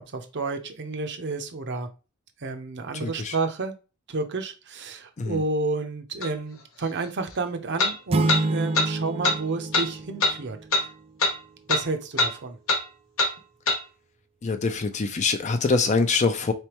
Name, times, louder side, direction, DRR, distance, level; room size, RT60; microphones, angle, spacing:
voice 1, 0.0-1.9 2.4-3.7 4.1-10.6 11.7-12.6, right 3 dB, 55° right, 0.7 m, -30 dB
voice 2, 3.0-3.3 5.2-5.4 14.4-16.5, left 4 dB, 35° left, 0.5 m, -24 dB
sound 1, 6.2-6.3 7.8-7.9 8.3-8.4 8.7-8.9 9.2-9.4 9.7-9.9 10.2-10.3 10.7-10.9 11.2-11.4 11.7-11.8 12.2-12.3 12.7-12.8 13.2-13.3 13.7-13.8, left 3 dB, 70° left, 1.0 m, -22 dB
sound 2, 8.1-10.9, right 2 dB, 30° right, 0.3 m, -28 dB
4.2 x 3.3 x 3.0 m
head